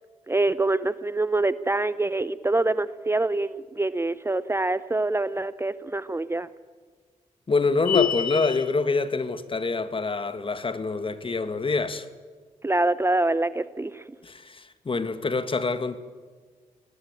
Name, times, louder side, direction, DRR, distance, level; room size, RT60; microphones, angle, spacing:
voice 1, 0.3-6.5 12.6-14.0, right 2 dB, 20° right, 0.6 m, -25 dB
voice 2, 7.5-12.1 14.2-16.0, left 4 dB, 40° left, 1.6 m, -26 dB
sound 1, 7.9-8.7, left 8 dB, 85° left, 1.1 m, -25 dB
20.0 x 19.5 x 8.9 m
cardioid pair, 75°, 14 cm